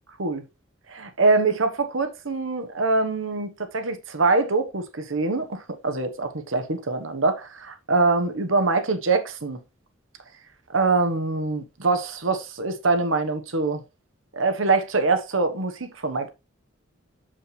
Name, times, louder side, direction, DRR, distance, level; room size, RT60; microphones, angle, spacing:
voice 1, 0.9-9.6 10.7-13.8 14.3-16.3, right 3 dB, 80° right, 1.2 m, -24 dB
6.9 x 5.5 x 3.2 m
head